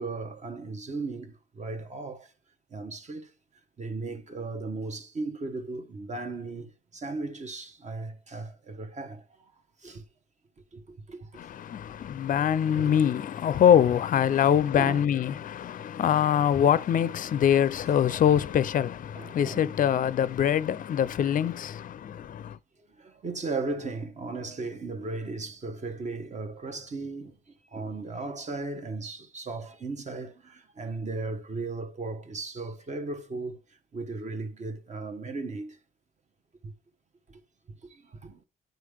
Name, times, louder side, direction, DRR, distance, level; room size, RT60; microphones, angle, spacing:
voice 1, 0.0-2.3 2.7-3.3 3.8-6.7 6.9-9.2 9.8-10.0 10.7-11.4 12.7-12.9 14.8-15.1 16.0-16.3 17.8-18.0 18.3-18.4 19.1-19.7 23.0-27.4 27.7-33.6 33.9-35.7 36.6-36.7 38.2-38.4, right 3 dB, 35° right, 1.0 m, -36 dB
voice 2, 11.4-22.6, left 9 dB, 45° left, 0.4 m, -24 dB
9.0 x 3.3 x 3.4 m
cardioid pair, 90°, 20 cm